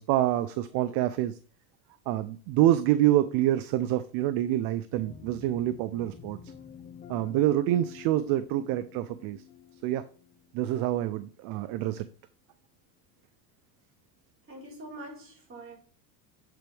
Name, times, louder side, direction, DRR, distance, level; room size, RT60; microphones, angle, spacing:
voice 1, 0.0-1.4 2.1-6.4 7.1-9.4 9.8-10.0 10.5-12.0, right 13 dB, 45° right, 0.5 m, -26 dB
sound 1, 4.9-11.5, left 8 dB, 20° left, 0.3 m, -50 dB
voice 2, 14.5-15.8, right 1 dB, 25° right, 3.8 m, -44 dB
7.9 x 4.5 x 3.4 m
supercardioid pair, 115°, 50 cm